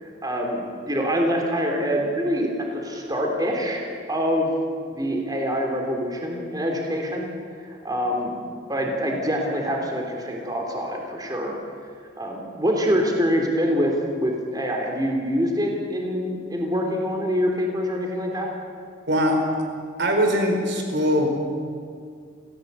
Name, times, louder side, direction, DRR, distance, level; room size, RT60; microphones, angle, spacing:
voice 1, 0.0-3.8 4.1-4.5 4.9-7.3 7.6-8.3 8.7-11.5 12.2-18.5, equal, 20° right, 0 dB, 3.4 m, -25 dB
voice 2, 19.1-19.4 20.0-21.3, equal, 55° right, 3 dB, 4.8 m, -21 dB
29.0 x 16.5 x 8.3 m, 2.2 s
head